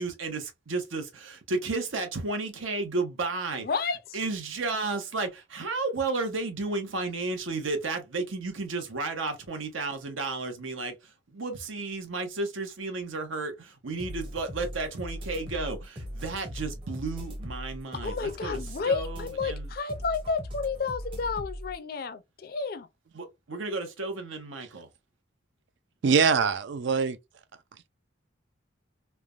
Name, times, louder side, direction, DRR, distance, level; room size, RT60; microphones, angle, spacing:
voice 1, 0.0-3.7 4.1-19.7 23.1-24.9, right 3 dB, 85° right, 0.8 m, -33 dB
voice 2, 3.6-4.0 18.0-22.9, left 4 dB, 50° left, 0.4 m, -31 dB
sound 1, 14.0-21.7, equal, 25° right, 0.7 m, -39 dB
voice 3, 26.0-27.2, right 5 dB, 65° right, 0.4 m, -23 dB
3.2 x 2.1 x 2.3 m
head